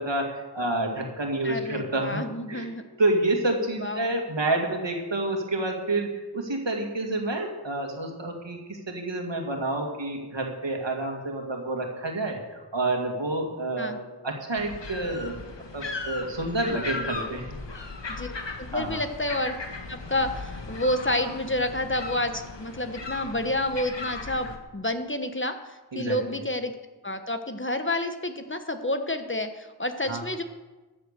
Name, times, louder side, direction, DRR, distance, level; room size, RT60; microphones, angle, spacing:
voice 1, 0.0-2.7 3.0-15.4 15.7-17.4 18.7-19.0 25.9-26.2 30.1-30.2, right 2 dB, 80° right, 2 dB, 2.5 m, -29 dB
voice 2, 1.4-2.8 3.8-4.1 13.8-14.0 18.1-19.5 19.9-24.5 24.7-26.7 27.0-30.4, left 1 dB, 25° left, 7 dB, 1.2 m, -29 dB
sound 1, 14.6-24.6, left 3 dB, 80° left, 1.6 m, -37 dB
14.0 x 8.7 x 6.8 m, 1.2 s
wide cardioid pair, 50°, 43 cm